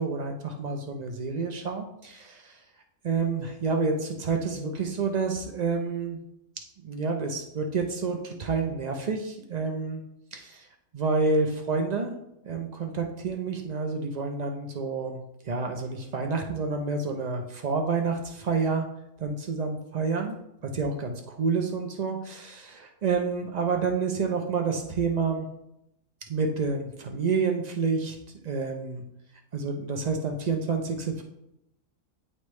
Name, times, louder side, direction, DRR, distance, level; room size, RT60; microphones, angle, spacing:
voice 1, 0.0-2.6 3.0-6.2 6.8-10.0 10.3-10.7 10.9-12.1 12.4-18.8 19.2-20.4 20.7-25.5 26.3-28.2 28.4-29.0 29.5-31.2, right 4 dB, 90° right, 3 dB, 0.3 m, -29 dB
9.5 x 3.2 x 3.1 m, 0.81 s
omnidirectional pair, 1.6 m